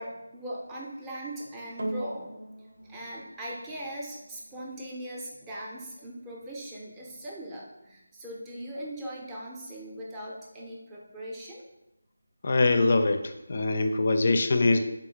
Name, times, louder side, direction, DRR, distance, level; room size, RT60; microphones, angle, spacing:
voice 1, 0.0-2.3 2.9-11.6, right 1 dB, 10° right, -4 dB, 0.5 m, -39 dB
A muted sustained, 1.8-10.3 11.1-11.2, right 1 dB, 60° right, 0.8 m, -44 dB
voice 2, 12.4-14.8, left 3 dB, 45° left, 7 dB, 0.4 m, -23 dB
3.8 x 2.3 x 4.4 m, 0.91 s
figure-of-eight pair, 170°, 0 cm